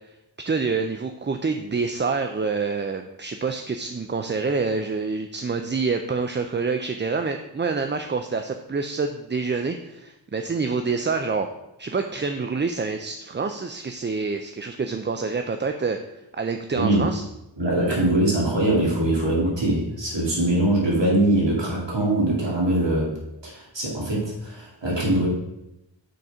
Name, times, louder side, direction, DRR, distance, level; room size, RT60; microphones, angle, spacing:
voice 1, 0.4-11.5 11.8-16.0 16.3-17.2, right 4 dB, 25° right, 7 dB, 0.4 m, -27 dB
voice 2, 16.7-17.1 17.6-23.2 23.4-25.3, right 1 dB, 65° right, -4 dB, 2.5 m, -22 dB
6.5 x 4.2 x 4.9 m, 0.90 s
wide cardioid pair, 60°, 46 cm